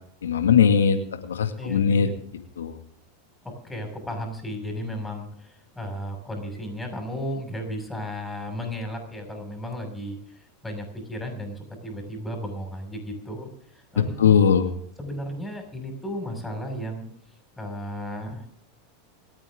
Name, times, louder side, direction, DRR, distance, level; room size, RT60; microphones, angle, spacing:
voice 1, 0.2-2.1 2.6-2.8 14.2-14.7, left 7 dB, 90° left, 6 dB, 2.2 m, -20 dB
voice 2, 1.6-2.1 3.6-14.3 15.0-17.1 17.6-18.5, equal, 10° left, 3 dB, 6.4 m, -34 dB
27.0 x 9.1 x 3.8 m, 0.65 s
hypercardioid pair, 105°, 0 cm